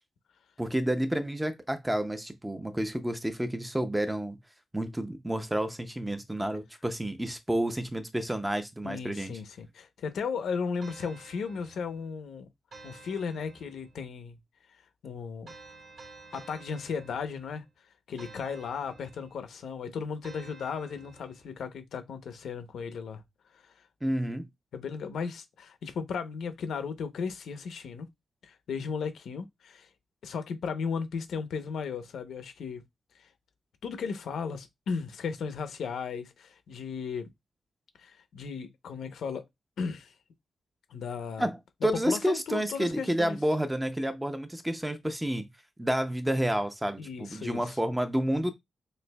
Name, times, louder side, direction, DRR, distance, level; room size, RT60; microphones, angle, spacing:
voice 1, 0.6-4.4 4.7-9.4 24.0-24.5 41.4-45.5 45.8-48.5, right 1 dB, 5° right, 0.5 m, -30 dB
voice 2, 8.8-12.5 12.8-14.4 15.0-15.5 16.3-17.6 18.1-23.2 24.7-28.1 28.4-29.9 30.2-32.8 33.8-37.3 38.0-39.4 39.8-40.1 40.9-41.5 42.1-43.4 47.0-47.8, left 5 dB, 85° left, 0.7 m, -35 dB
sound 1, 10.8-12.1 12.7-14.0 15.5-17.6 18.2-19.5 20.2-21.5, right 3 dB, 55° right, 1.6 m, -51 dB
6.4 x 2.6 x 2.2 m
wide cardioid pair, 165°, 0 cm